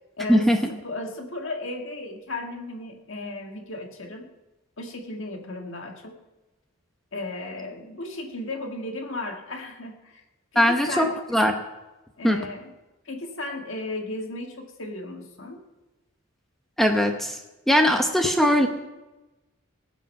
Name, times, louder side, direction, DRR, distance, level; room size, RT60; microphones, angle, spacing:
voice 1, 0.2-4.3 4.8-6.1 7.1-10.2 10.5-11.2 12.2-12.7 13.1-15.6, left 2 dB, 65° left, 3 dB, 1.8 m, -35 dB
voice 2, 10.5-11.5 12.2-12.4 16.8-17.4 17.7-18.7, equal, ahead, 4 dB, 0.9 m, -20 dB
19.5 x 8.1 x 5.5 m, 1.1 s
head